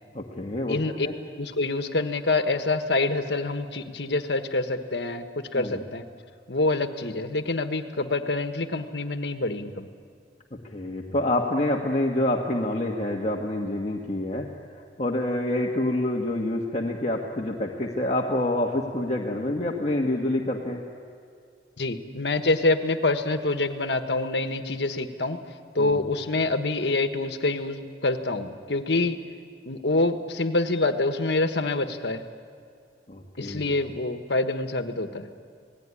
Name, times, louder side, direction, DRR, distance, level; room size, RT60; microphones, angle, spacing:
voice 1, 0.1-0.8 1.0-1.1 5.5-5.8 10.7-14.5 15.0-20.8 25.8-26.1 33.1-33.7, left 1 dB, 35° left, -1 dB, 1.6 m, -27 dB
voice 2, 0.7-1.1 1.4-5.3 5.5-6.0 6.5-9.9 21.8-25.4 25.7-29.2 29.6-32.2 33.4-35.3, left 2 dB, 75° left, 8 dB, 1.5 m, -26 dB
28.5 x 18.5 x 9.9 m, 2.3 s
head